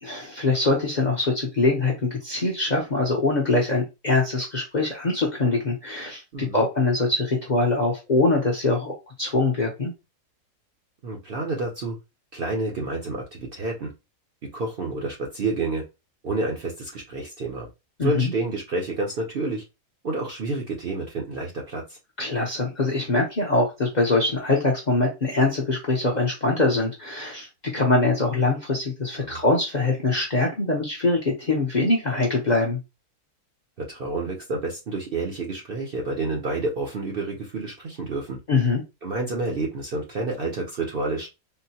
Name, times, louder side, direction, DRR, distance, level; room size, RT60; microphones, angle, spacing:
voice 1, 0.0-9.9 18.0-18.3 22.2-27.5 27.7-32.8 38.5-38.8, left 3 dB, 40° left, -1 dB, 0.6 m, -23 dB
voice 2, 6.3-6.6 11.0-12.0 12.3-13.9 14.4-15.8 16.2-17.7 18.0-19.6 20.0-22.0 29.2-29.4 33.8-38.4 39.0-41.3, right 3 dB, 50° right, 0 dB, 0.7 m, -29 dB
3.7 x 2.1 x 2.7 m, 0.25 s
omnidirectional pair, 1.6 m